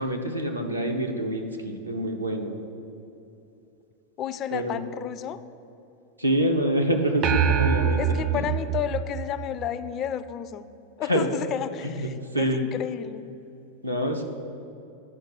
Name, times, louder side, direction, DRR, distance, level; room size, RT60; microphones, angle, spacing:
voice 1, 0.0-2.6 4.5-4.8 6.2-8.0 8.3-8.4 11.1-11.3 11.8-12.7 13.8-14.2, equal, 85° right, 2 dB, 0.8 m, -26 dB
voice 2, 4.2-5.4 8.0-10.7 11.0-13.4, left 10 dB, 35° left, 14 dB, 0.3 m, -32 dB
sound 1, 7.2-9.9, right 8 dB, 35° right, 0.4 m, -25 dB
11.0 x 5.1 x 6.1 m, 2.8 s
figure-of-eight pair, 90°, 0 cm